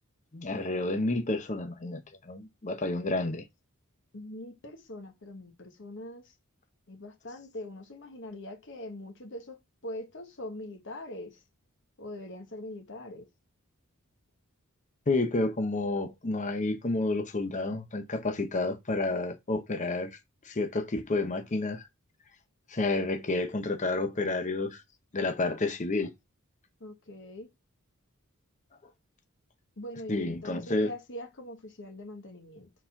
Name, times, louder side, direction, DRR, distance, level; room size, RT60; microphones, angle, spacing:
voice 1, 0.3-3.4 15.1-20.2 20.4-21.9 22.7-24.8 25.1-26.1 30.1-30.9, left 2 dB, 35° left, 0.7 m, -30 dB
voice 2, 4.1-6.3 6.9-11.4 12.0-13.3 26.8-27.5 29.8-32.7, left 1 dB, 55° left, 1.4 m, -42 dB
4.4 x 4.1 x 5.7 m
head